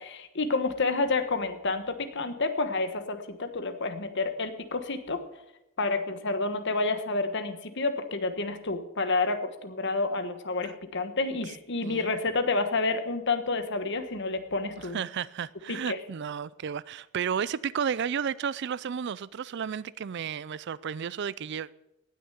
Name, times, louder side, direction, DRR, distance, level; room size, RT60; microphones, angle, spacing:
voice 1, 0.0-5.2 5.8-15.0 15.7-16.0, left 3 dB, 55° left, 1.3 m, -29 dB
voice 2, 14.9-21.7, right 7 dB, 55° right, 0.4 m, -32 dB
17.5 x 6.6 x 8.0 m
head